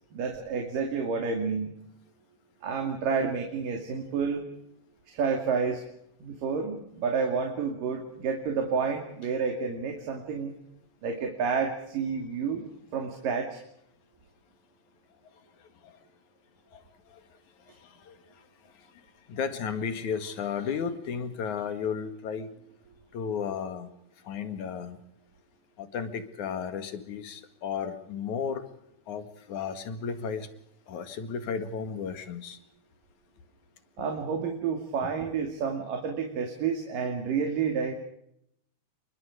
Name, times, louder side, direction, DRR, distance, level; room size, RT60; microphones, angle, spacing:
voice 1, 0.1-1.7 2.6-4.5 5.1-5.8 6.2-10.5 11.0-12.7 12.9-13.6 34.0-37.9, right 5 dB, 80° right, 4.2 m, -30 dB
voice 2, 15.6-16.0 16.7-17.2 17.7-18.9 19.3-22.5 23.1-23.9 24.2-25.0 25.8-28.7 29.1-30.5 30.9-32.6, left 6 dB, 65° left, 3.2 m, -34 dB
29.0 x 24.0 x 5.0 m
omnidirectional pair, 3.8 m